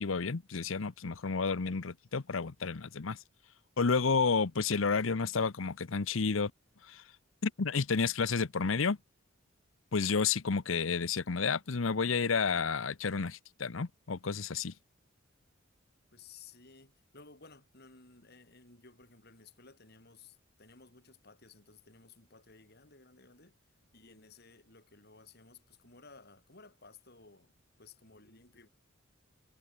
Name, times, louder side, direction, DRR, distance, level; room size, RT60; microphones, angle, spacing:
voice 1, 0.0-3.2 3.8-6.5 6.8-7.0 7.4-9.0 9.9-14.7, left 5 dB, 75° left, 0.8 m, -31 dB
voice 2, 16.1-23.6 23.8-28.7, left 4 dB, 55° left, 7.0 m, -57 dB
head